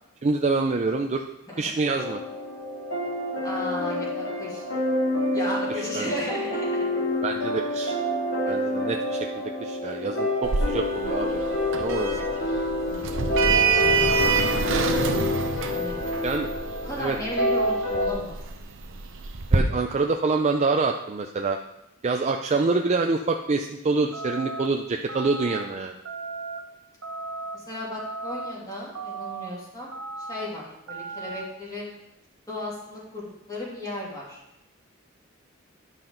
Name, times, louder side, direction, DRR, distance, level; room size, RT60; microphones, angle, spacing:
voice 1, 0.2-1.2 1.6-2.2 5.9-6.1 7.2-7.9 8.4-11.5 11.8-12.2 16.2-16.5 17.0-17.2 19.5-21.6 22.0-26.0, right 3 dB, 35° right, 3 dB, 0.4 m, -26 dB
sound 1, 1.9-18.1, left 1 dB, 60° left, 2.2 m, -27 dB
voice 2, 3.4-4.7 5.3-6.8 8.4-8.6 13.4-13.6 14.1-14.4 14.7-14.9 15.2-15.4 15.7-15.9 16.8-18.4 27.5-29.9 30.2-31.9 32.5-34.4, left 1 dB, 20° left, -5 dB, 2.7 m, -35 dB
Sliding door, 10.4-19.6, right 5 dB, 65° right, 0.8 m, -27 dB
sound 2, 24.1-24.7 25.1-25.6 26.1-26.6 27.0-27.6 28.0-28.5 29.0-29.5 29.9-30.5 30.9-31.4, right 3 dB, 85° right, 0.9 m, -35 dB
10.5 x 5.9 x 3.9 m, 0.87 s
head